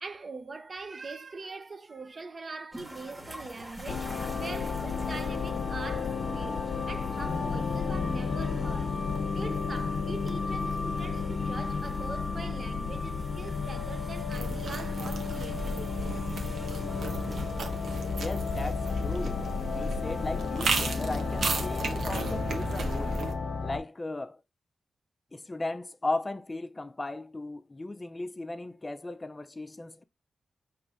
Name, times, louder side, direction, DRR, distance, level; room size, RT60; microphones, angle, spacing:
voice 1, 0.0-16.2, right 3 dB, 45° right, 0.6 m, -43 dB
sound 1, 2.7-21.6, equal, 15° right, 1.3 m, -49 dB
sound 2, 3.9-23.8, left 4 dB, 70° left, 0.6 m, -32 dB
sound 3, 14.3-23.3, right 3 dB, 85° right, 1.0 m, -35 dB
voice 2, 18.2-19.4 19.7-23.2 23.6-24.4 25.3-30.0, left 2 dB, 25° left, 0.4 m, -36 dB
4.8 x 3.1 x 3.6 m
cardioid pair, 80°, 0 cm